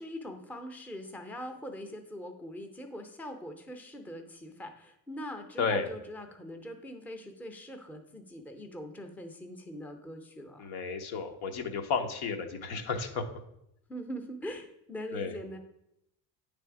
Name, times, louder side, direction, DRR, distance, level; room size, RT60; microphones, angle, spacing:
voice 1, 0.0-10.6 13.9-15.6, equal, 5° left, 5 dB, 0.5 m, -42 dB
voice 2, 5.6-5.9 10.6-13.2 15.1-15.3, left 5 dB, 80° left, 5 dB, 1.0 m, -32 dB
8.8 x 3.4 x 4.7 m, 0.80 s
cardioid pair, 140°, 38 cm